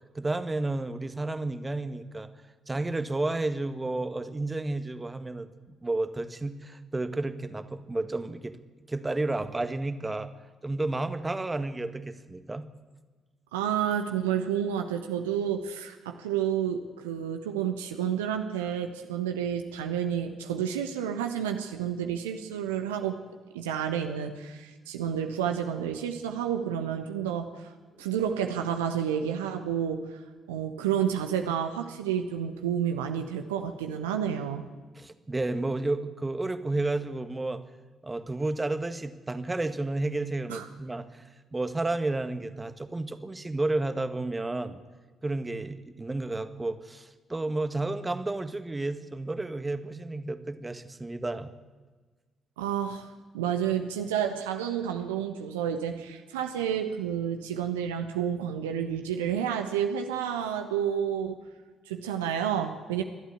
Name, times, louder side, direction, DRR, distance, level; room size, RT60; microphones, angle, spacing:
voice 1, 0.1-2.3 2.7-5.5 5.8-8.6 8.9-10.3 10.6-12.6 35.0-37.6 38.0-41.2 41.5-44.8 45.2-51.5, right 2 dB, 20° right, 10 dB, 1.6 m, -31 dB
voice 2, 13.5-23.2 23.5-27.7 28.0-30.2 30.5-34.6 40.5-40.7 52.6-53.1 53.3-61.4 61.9-63.0, right 9 dB, 75° right, 5 dB, 1.2 m, -30 dB
28.0 x 12.5 x 8.5 m, 1.3 s
figure-of-eight pair, 40°, 0 cm